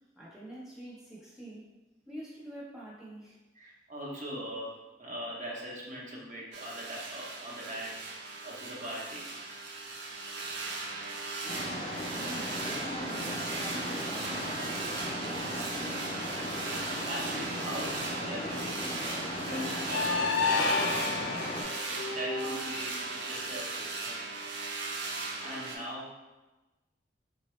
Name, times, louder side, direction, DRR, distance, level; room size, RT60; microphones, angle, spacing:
voice 1, 0.2-1.7 2.1-3.4 11.4-16.0, right 1 dB, 5° right, -7 dB, 0.8 m, -46 dB
voice 2, 3.5-8.1 8.4-9.3 16.9-19.2 19.4-25.1 25.4-26.2, equal, 45° right, -4 dB, 0.8 m, -41 dB
sound 1, 6.5-25.8, right 3 dB, 70° right, 0.5 m, -38 dB
sound 2, 11.5-21.6, left 1 dB, 30° left, 0.5 m, -37 dB
sound 3, 19.6-22.7, left 4 dB, 90° left, 0.4 m, -31 dB
3.6 x 2.1 x 3.1 m, 1.1 s
head